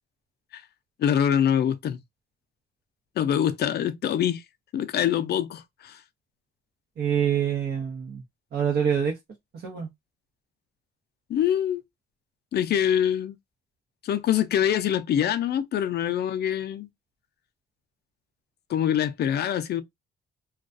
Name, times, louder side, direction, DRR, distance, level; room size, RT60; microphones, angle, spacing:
voice 1, 1.0-2.0 3.2-4.4 4.7-6.0 11.3-11.8 12.5-13.4 14.0-16.9 18.7-19.8, left 9 dB, 55° left, 0.4 m, -24 dB
voice 2, 7.0-8.2 8.5-9.1 9.6-9.9, right 8 dB, 55° right, 0.8 m, -25 dB
2.3 x 2.2 x 2.4 m
cardioid pair, 90°, 20 cm